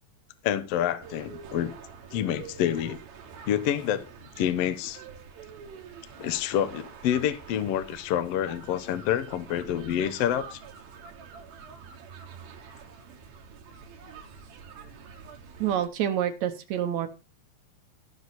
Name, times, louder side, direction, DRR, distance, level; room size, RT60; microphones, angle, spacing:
voice 1, 0.4-1.7 2.1-3.0 3.5-4.1 4.4-5.0 6.2-10.6, left 10 dB, 90° left, 1.4 m, -27 dB
sound 1, 1.0-15.9, right 6 dB, 85° right, 3.5 m, -46 dB
voice 2, 15.6-17.1, right 10 dB, 70° right, 1.8 m, -27 dB
16.5 x 6.5 x 4.1 m
omnidirectional pair, 4.1 m